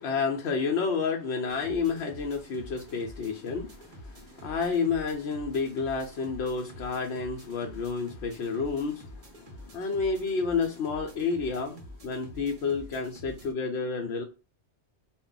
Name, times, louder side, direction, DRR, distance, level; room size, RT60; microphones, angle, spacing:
voice 1, 0.0-14.2, left 5 dB, 80° left, 0.9 m, -30 dB
sound 1, 1.5-13.5, equal, 40° right, 0.6 m, -48 dB
2.3 x 2.0 x 3.7 m
omnidirectional pair, 1.1 m